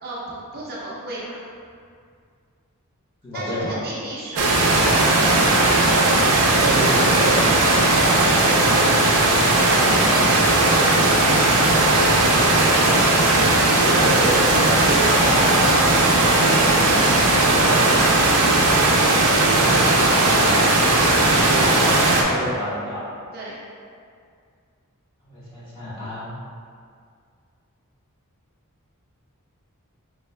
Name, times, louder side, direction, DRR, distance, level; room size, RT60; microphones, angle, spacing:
voice 1, 0.0-1.4 3.3-4.8 19.5-20.7 23.3-23.5, right 1 dB, 45° right, -5 dB, 0.7 m, -34 dB
voice 2, 3.2-3.7 6.5-7.4 13.8-18.2 21.4-21.9 22.3-23.0 25.2-26.3, equal, 25° left, -10 dB, 1.3 m, -28 dB
sound 1, 4.4-22.2, right 2 dB, 80° right, 0.6 m, -17 dB
4.3 x 3.0 x 3.3 m, 2.2 s
head